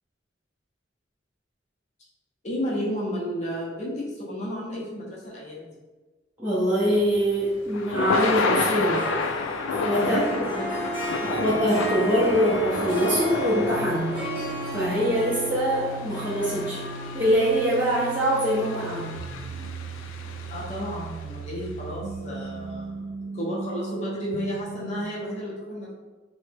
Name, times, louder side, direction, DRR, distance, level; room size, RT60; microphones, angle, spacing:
voice 1, 2.4-5.7 10.0-10.7 11.1-11.5 20.5-25.9, equal, 35° left, -5 dB, 0.5 m, -32 dB
voice 2, 6.4-9.1 9.7-10.2 11.2-14.3 14.7-16.8 17.1-19.2, equal, 10° right, -10 dB, 0.6 m, -24 dB
Thunder / Rain, 7.0-21.2, left 4 dB, 90° left, 0.3 m, -31 dB
Harp, 8.2-19.6, right 1 dB, 25° right, 1.3 m, -33 dB
sound 1, 13.7-25.0, right 3 dB, 80° right, 0.3 m, -38 dB
3.3 x 2.0 x 3.2 m, 1.3 s
head